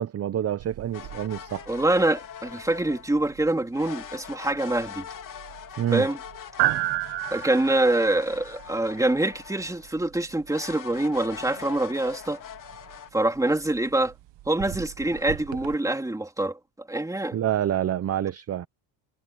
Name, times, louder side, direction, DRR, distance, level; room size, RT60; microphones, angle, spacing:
voice 1, 0.0-1.6 5.8-6.1 17.3-18.7, right 11 dB, 35° right, 0.7 m, -27 dB
sound 1, 0.6-15.7, right 16 dB, 65° right, 1.2 m, -36 dB
sound 2, 0.9-3.1 3.7-9.9 10.5-13.1, left 9 dB, 45° left, 3.5 m, -42 dB
voice 2, 1.7-5.0 5.9-6.2 7.3-12.4 13.1-14.1 14.5-16.6 16.9-17.4, right 2 dB, 5° right, 3.3 m, -25 dB
cardioid pair, 150°, 46 cm